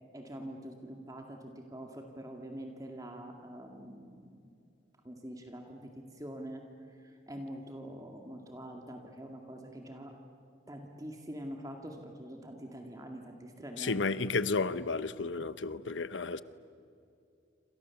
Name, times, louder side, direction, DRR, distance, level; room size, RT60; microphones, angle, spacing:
voice 1, 0.1-4.3 5.0-6.6 6.9-10.1 10.7-14.1, equal, 20° right, 2.1 m, -45 dB
voice 2, 13.8-16.4, left 4 dB, 80° left, 0.9 m, -32 dB
28.5 x 26.5 x 7.2 m
head